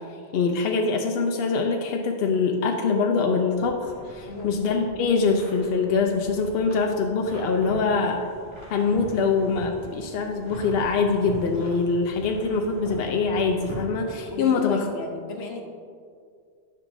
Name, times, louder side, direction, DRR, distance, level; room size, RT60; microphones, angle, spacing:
voice 1, 0.3-8.2 8.7-14.9, left 4 dB, 75° left, 2 dB, 0.8 m, -24 dB
sound 1, 3.5-14.3, right 2 dB, 25° right, 1.8 m, -41 dB
voice 2, 4.2-4.5 14.3-15.6, left 2 dB, 90° left, 2 dB, 1.1 m, -35 dB
10.0 x 5.6 x 2.6 m, 2.2 s
omnidirectional pair, 1.0 m